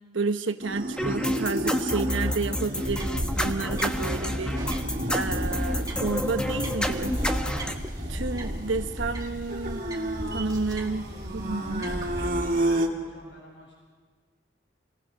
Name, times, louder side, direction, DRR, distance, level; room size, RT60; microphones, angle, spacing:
voice 1, 0.1-4.8 5.1-7.1 8.1-9.8 10.3-11.0 11.3-11.9, right 3 dB, 80° right, 7 dB, 1.1 m, -30 dB
sound 1, 0.6-12.9, right 1 dB, 45° right, 2.5 m, -33 dB
sound 2, 1.0-7.7, left 1 dB, 5° left, 1.0 m, -30 dB
sound 3, 2.8-12.6, equal, 20° right, 2.0 m, -35 dB
voice 2, 10.9-13.7, equal, 70° left, -2 dB, 7.6 m, -49 dB
28.5 x 19.0 x 6.4 m, 1.5 s
head